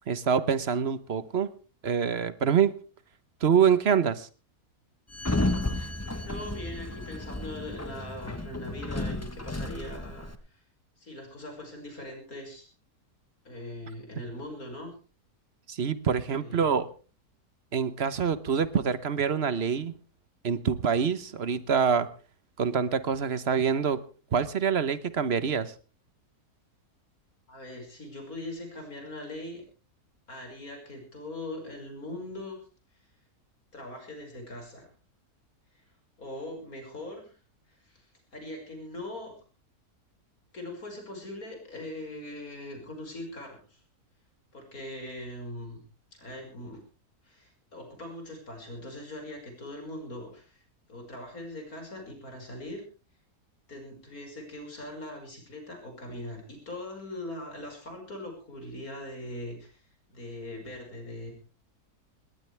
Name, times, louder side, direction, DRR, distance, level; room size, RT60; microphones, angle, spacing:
voice 1, 0.1-1.5 1.8-2.7 3.4-4.3 15.7-16.9 17.7-19.9 20.4-22.1 22.6-24.0 24.3-25.7, right 7 dB, 45° right, 14 dB, 1.2 m, -25 dB
Sliding door, 5.1-10.4, left 2 dB, 10° left, 0.9 m, -32 dB
voice 2, 6.2-10.6 11.0-12.7 13.4-14.9 16.3-16.7 27.5-29.6 30.3-32.6 33.7-34.9 35.7-35.8 36.2-37.4 37.7-39.3 40.5-43.8 44.5-45.8 46.1-46.8 47.2-50.6 50.9-52.8 53.7-59.8 60.1-61.3, left 1 dB, 65° left, 3 dB, 6.1 m, -41 dB
19.5 x 19.0 x 3.4 m, 0.35 s
omnidirectional pair, 1.6 m